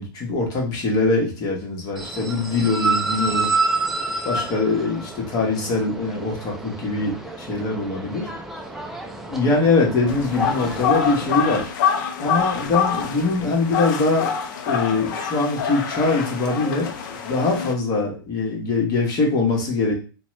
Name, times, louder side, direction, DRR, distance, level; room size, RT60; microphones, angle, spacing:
voice 1, 0.0-3.5 4.2-8.3 9.3-11.7 12.2-14.3 14.7-16.9 17.3-19.9, left 3 dB, 30° left, -1 dB, 1.0 m, -22 dB
sound 1, 2.0-11.6, right 3 dB, ahead, 0.3 m, -29 dB
sound 2, 10.1-17.7, left 7 dB, 55° left, 0.5 m, -26 dB
2.9 x 2.2 x 3.0 m, 0.35 s
hypercardioid pair, 130°, 12 cm